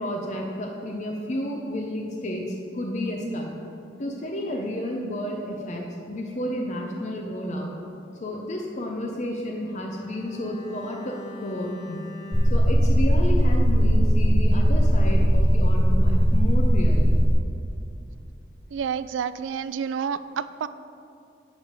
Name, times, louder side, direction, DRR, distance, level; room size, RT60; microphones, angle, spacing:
voice 1, 0.0-3.5 4.0-7.7 8.2-12.0 12.5-17.2, equal, 40° left, 0 dB, 0.6 m, -31 dB
Bowed string instrument, 9.5-13.9 14.2-14.4, left 1 dB, 20° left, 1.0 m, -42 dB
sound 1, 12.3-17.3, equal, ahead, 0.4 m, -19 dB
voice 2, 18.7-20.7, right 7 dB, 90° right, 14 dB, 0.3 m, -29 dB
10.0 x 3.4 x 6.6 m, 2.5 s
head